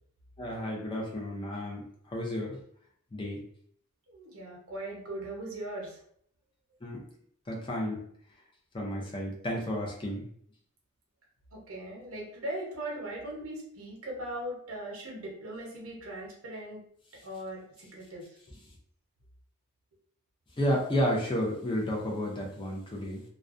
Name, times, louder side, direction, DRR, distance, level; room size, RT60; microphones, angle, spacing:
voice 1, 0.4-1.8 2.1-2.6 3.1-3.4 6.8-7.0 7.5-8.0 8.7-10.3 18.5-18.6 20.6-23.2, equal, 25° left, -2 dB, 0.5 m, -32 dB
voice 2, 4.1-5.9 11.5-16.8 17.2-18.2, right 1 dB, 65° right, -3 dB, 0.8 m, -39 dB
2.3 x 2.2 x 2.5 m, 0.64 s
head